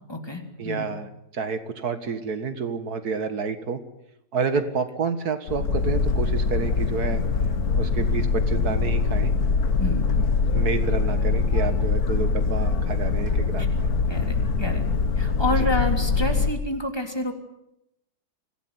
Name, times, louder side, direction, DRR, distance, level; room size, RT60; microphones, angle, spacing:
voice 1, 0.1-0.9 9.8-10.1 13.6-13.7 14.1-14.8 15.2-17.3, left 1 dB, 15° left, 4 dB, 3.4 m, -29 dB
voice 2, 0.6-3.8 4.3-7.2 7.8-9.3 10.5-13.9 15.6-15.7, right 5 dB, 80° right, 10 dB, 2.2 m, -29 dB
Boat Water vehicle, 5.5-16.5, left 4 dB, 80° left, 2.0 m, -23 dB
25.0 x 17.5 x 9.5 m, 0.85 s
omnidirectional pair, 1.6 m